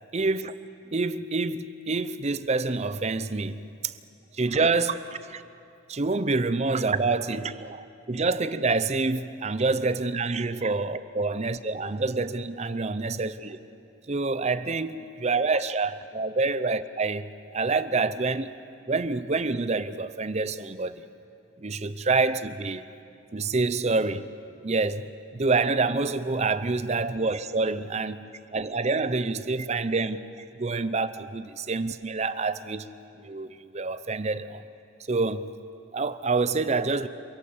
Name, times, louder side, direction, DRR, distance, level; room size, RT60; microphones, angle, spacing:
voice 1, 0.1-0.5 0.9-3.9 4.3-5.4 5.9-13.6 14.1-18.5 18.9-21.0 21.6-22.8 23.3-24.3 24.6-25.0 25.3-32.9 33.2-34.6 35.1-35.5 35.9-37.1, right 3 dB, 35° right, 0.6 m, -27 dB
28.0 x 16.5 x 7.1 m
head